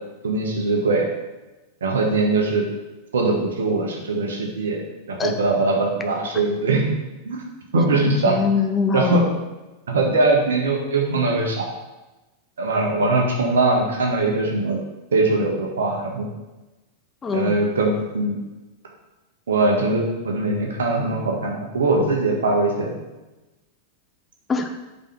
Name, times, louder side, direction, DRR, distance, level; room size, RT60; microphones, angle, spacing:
voice 1, 0.2-1.1 1.8-2.7 3.1-4.8 5.1-6.9 7.2-7.4 7.7-8.4 8.9-9.2 9.9-11.7 12.6-14.8 15.1-16.3 17.3-18.4 19.5-22.9, right 2 dB, 65° right, 0 dB, 1.4 m, -21 dB
voice 2, 8.3-9.3 17.2-17.6 24.5-24.7, left 4 dB, 20° left, 4 dB, 0.6 m, -22 dB
5.5 x 4.1 x 5.3 m, 1.1 s
figure-of-eight pair, 90°, 0 cm